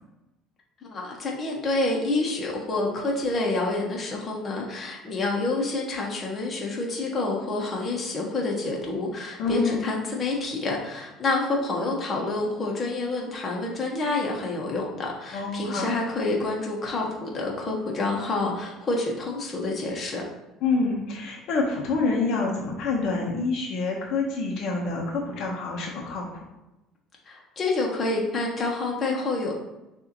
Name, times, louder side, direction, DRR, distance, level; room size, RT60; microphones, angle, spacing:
voice 1, 0.8-20.2 27.3-29.5, left 2 dB, 30° left, -2 dB, 1.2 m, -28 dB
voice 2, 9.4-9.9 15.3-15.9 20.6-26.4, left 3 dB, 60° left, -1 dB, 1.0 m, -27 dB
6.3 x 2.8 x 3.0 m, 0.97 s
cardioid pair, 115°, 0 cm